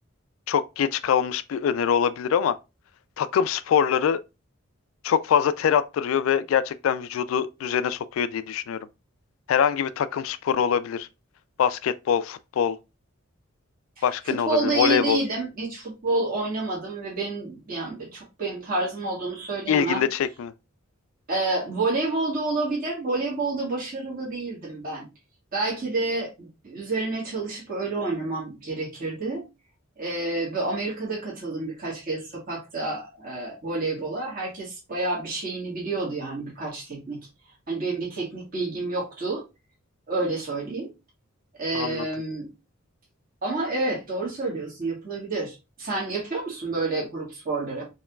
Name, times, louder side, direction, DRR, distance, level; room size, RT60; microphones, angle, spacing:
voice 1, 0.5-2.6 3.2-4.2 5.0-8.8 9.5-11.1 11.6-12.8 14.0-15.2 19.7-20.5 41.7-42.1, left 8 dB, 70° left, 0.3 m, -24 dB
voice 2, 14.0-20.0 21.3-25.1 25.5-29.4 30.0-37.2 37.7-39.4 40.1-40.9 41.6-42.5 43.4-47.8, right 2 dB, 45° right, 1.6 m, -29 dB
4.6 x 2.9 x 2.2 m
head